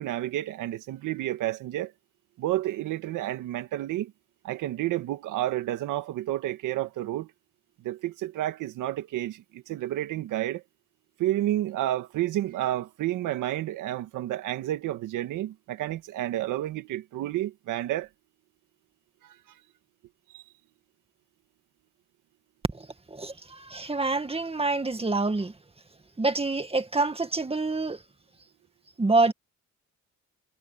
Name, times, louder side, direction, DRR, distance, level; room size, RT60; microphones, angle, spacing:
voice 1, 0.0-1.9 2.4-4.1 4.4-7.3 7.8-10.6 11.2-18.1 19.2-19.4 20.3-20.4, right 14 dB, 90° right, 2.0 m, -30 dB
voice 2, 22.7-25.5 26.2-28.0 29.0-29.3, right 3 dB, 20° right, 2.0 m, -27 dB
cardioid pair, 90°, 30 cm